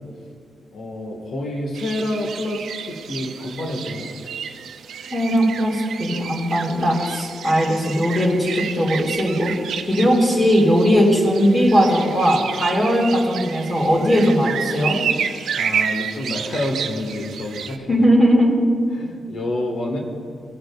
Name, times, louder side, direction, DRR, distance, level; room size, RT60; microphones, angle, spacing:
voice 1, 0.7-4.4 15.3-18.0 19.0-20.0, left 1 dB, 70° left, 1 dB, 1.4 m, -28 dB
sound 1, 1.7-17.8, right 7 dB, 80° right, 0.5 m, -30 dB
voice 2, 5.1-9.5 9.9-15.0 17.9-18.6, equal, 25° left, -6 dB, 2.0 m, -18 dB
19.5 x 6.7 x 2.3 m, 2.2 s
wide cardioid pair, 125°, 0 cm